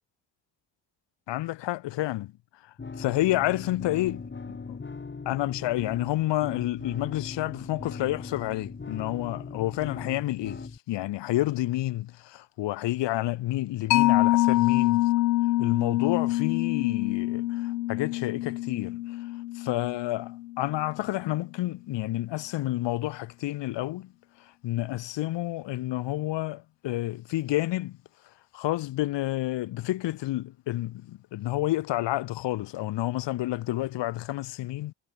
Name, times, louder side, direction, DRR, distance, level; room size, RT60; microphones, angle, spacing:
voice 1, 1.3-2.3 3.0-4.8 5.2-15.1 15.6-19.0 19.7-24.1 24.6-28.0 28.5-34.9, left 16 dB, 55° left, 1.5 m, -29 dB
sound 1, 2.8-10.8, left 4 dB, 20° left, 2.0 m, -40 dB
Mallet percussion, 13.9-21.0, left 17 dB, 80° left, 1.1 m, -26 dB
figure-of-eight pair, 40°, 50 cm